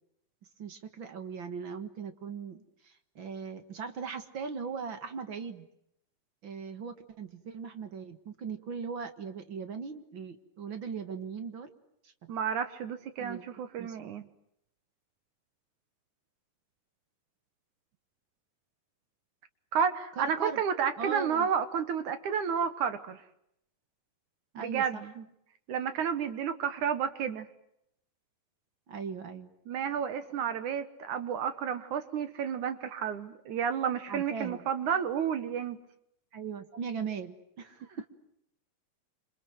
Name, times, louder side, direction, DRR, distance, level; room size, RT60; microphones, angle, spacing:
voice 1, 0.6-5.7 6.4-11.7 12.0-12.3 13.2-13.5 13.8-14.0 20.2-20.6 21.0-21.5 24.5-25.0 28.9-29.5 34.1-34.6 36.3-38.1, right 6 dB, 45° right, 9 dB, 1.6 m, -39 dB
voice 2, 12.3-14.3 19.7-23.2 24.6-25.3 25.7-27.5 29.7-35.8, right 7 dB, 65° right, 11 dB, 2.3 m, -31 dB
28.0 x 27.0 x 7.9 m, 0.77 s
omnidirectional pair, 4.4 m